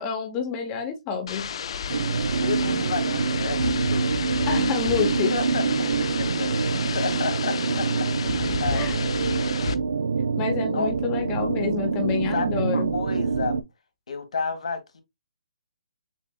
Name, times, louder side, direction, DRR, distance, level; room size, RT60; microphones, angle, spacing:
voice 1, 0.0-1.5 4.4-5.3 8.7-8.9 10.4-12.9, left 6 dB, 20° left, 0.7 m, -28 dB
sound 1, 1.3-9.8, left 7 dB, 50° left, 0.4 m, -32 dB
sound 2, 1.9-13.6, right 5 dB, 80° right, 0.4 m, -25 dB
voice 2, 2.3-4.0 4.9-5.0 5.3-5.6 5.9-7.9 8.3-9.2 10.7-10.9 12.3-13.6 14.1-15.0, left 4 dB, 75° left, 1.3 m, -31 dB
6.9 x 2.5 x 2.2 m
hypercardioid pair, 160°, 4 cm